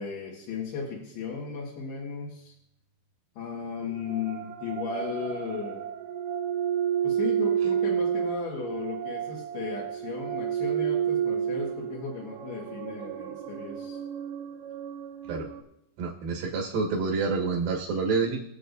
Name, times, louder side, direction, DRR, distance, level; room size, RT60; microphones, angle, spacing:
voice 1, 0.0-2.5 3.4-5.8 7.0-14.0, left 5 dB, 75° left, -5 dB, 3.7 m, -35 dB
sound 1, 3.8-15.6, right 9 dB, 85° right, 2.8 m, -31 dB
voice 2, 16.0-18.4, right 4 dB, 65° right, -1 dB, 2.9 m, -28 dB
22.5 x 7.9 x 2.7 m, 0.78 s
omnidirectional pair, 4.7 m